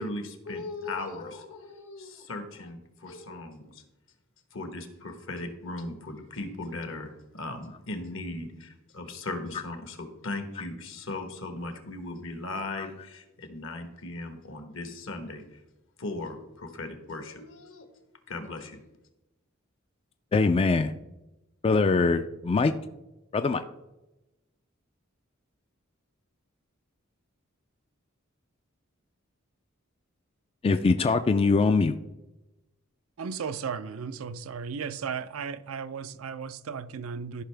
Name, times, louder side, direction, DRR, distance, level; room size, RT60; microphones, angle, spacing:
voice 1, 0.0-3.8 4.5-15.4 16.0-17.9 18.3-18.8, left 2 dB, 70° left, 1.2 m, -38 dB
voice 2, 20.3-20.9 21.6-22.7 23.3-23.6 30.6-32.0, left 4 dB, 25° left, 0.3 m, -23 dB
voice 3, 33.2-37.4, right 6 dB, 90° right, 0.5 m, -35 dB
14.0 x 5.5 x 3.4 m
head